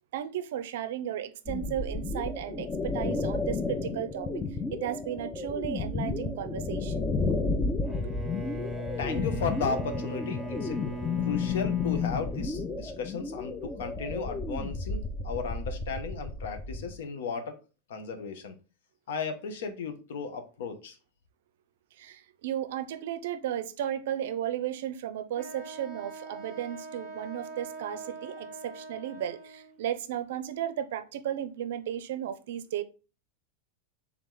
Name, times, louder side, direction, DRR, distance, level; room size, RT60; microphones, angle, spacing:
voice 1, 0.1-4.3 4.7-7.1 22.0-32.8, right 10 dB, 70° right, 0.5 m, -34 dB
sound 1, 1.5-16.9, left 4 dB, 20° left, 0.6 m, -32 dB
Bowed string instrument, 7.8-13.2, left 1 dB, 5° right, 1.0 m, -39 dB
voice 2, 9.0-10.8 11.2-17.6 17.9-18.5 19.1-21.0, left 5 dB, 75° left, 0.8 m, -35 dB
Wind instrument woodwind instrument, 25.4-29.8, right 3 dB, 35° left, 1.3 m, -43 dB
3.5 x 3.0 x 3.7 m
hypercardioid pair, 100°, 0 cm